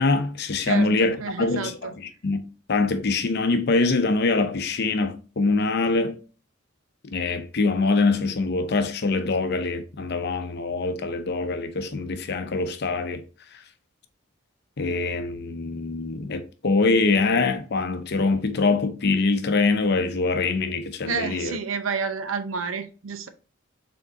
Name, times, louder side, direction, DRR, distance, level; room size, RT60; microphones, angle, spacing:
voice 1, 0.0-1.7 2.2-2.4 2.7-6.2 7.1-13.2 14.8-21.6, left 3 dB, 55° left, 0.6 m, -24 dB
voice 2, 0.6-1.9 21.0-23.3, right 5 dB, 80° right, 0.6 m, -30 dB
4.6 x 3.7 x 2.8 m
head